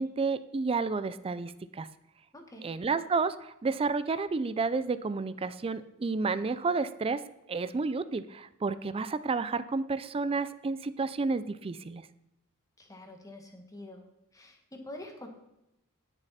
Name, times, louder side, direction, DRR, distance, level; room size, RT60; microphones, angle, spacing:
voice 1, 0.0-1.9 2.6-7.2 7.5-12.0, right 4 dB, 25° right, 14 dB, 0.4 m, -31 dB
voice 2, 2.3-2.7 12.8-14.0 14.3-15.3, left 1 dB, 15° left, 3 dB, 1.6 m, -46 dB
18.0 x 6.6 x 4.2 m, 0.89 s
head